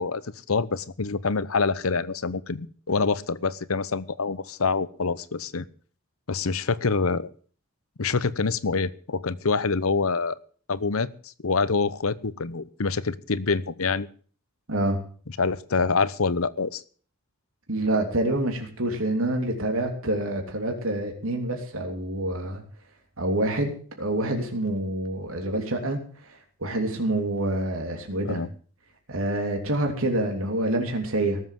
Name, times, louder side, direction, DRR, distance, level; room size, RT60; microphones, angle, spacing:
voice 1, 0.0-5.6 6.3-7.3 8.0-10.4 10.7-14.1 15.4-16.8 28.2-28.5, left 4 dB, 85° left, 16 dB, 0.9 m, -26 dB
voice 2, 14.7-15.0 17.7-22.6 23.2-26.0 26.6-28.4 29.1-31.4, right 1 dB, 80° right, 3 dB, 3.2 m, -27 dB
18.5 x 7.7 x 7.6 m, 0.44 s
head